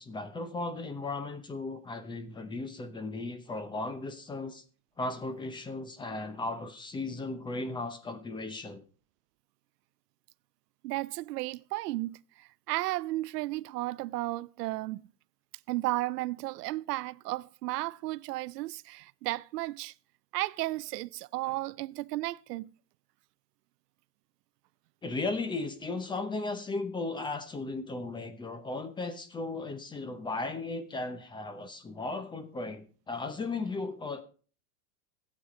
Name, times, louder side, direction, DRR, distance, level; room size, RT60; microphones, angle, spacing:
voice 1, 0.0-4.6 5.0-8.8 25.0-34.2, left 3 dB, 10° left, 0.7 m, -36 dB
voice 2, 10.8-15.0 15.7-19.9 20.3-22.7, right 19 dB, 90° right, 0.5 m, -34 dB
13.0 x 8.6 x 3.7 m
supercardioid pair, 140°, 46 cm